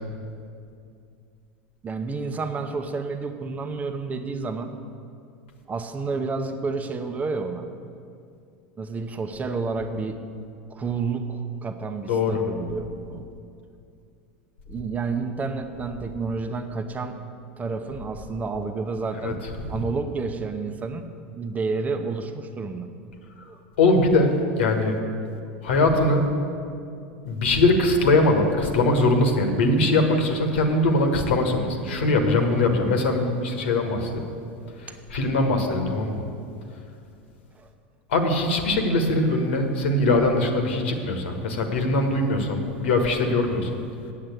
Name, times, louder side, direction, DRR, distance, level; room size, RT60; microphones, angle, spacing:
voice 1, 1.8-4.7 5.7-7.7 8.8-10.2 10.7-13.3 14.7-17.2 17.6-19.4 19.7-21.1 21.3-22.9 23.4-23.6 37.5-37.7, right 4 dB, 25° right, 7 dB, 0.9 m, -30 dB
voice 2, 12.1-12.4 19.2-19.3 19.6-19.7 23.8-24.9 25.6-26.3 27.2-34.2 34.8-36.2 38.1-43.8, left 2 dB, 75° left, 4 dB, 1.4 m, -21 dB
8.7 x 7.7 x 8.1 m, 2.4 s
hypercardioid pair, 90°, 6 cm